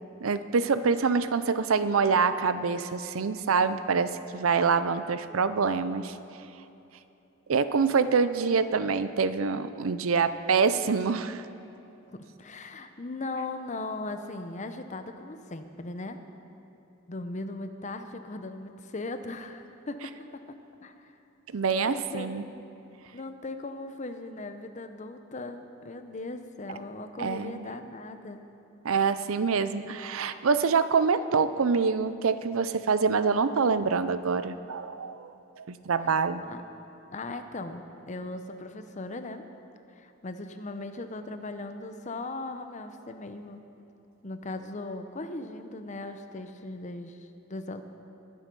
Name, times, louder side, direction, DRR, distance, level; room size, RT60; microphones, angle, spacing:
voice 1, 0.2-6.1 7.5-11.4 21.5-22.4 27.2-27.7 28.8-35.3 35.7-36.4, right 5 dB, 80° right, 12 dB, 0.6 m, -25 dB
voice 2, 12.1-16.2 17.1-20.1 20.8-21.1 21.9-22.5 23.1-28.4 36.1-36.6 37.1-39.4 40.0-43.6 44.2-47.8, left 2 dB, 35° left, 8 dB, 0.7 m, -38 dB
21.0 x 7.6 x 5.4 m, 2.8 s
head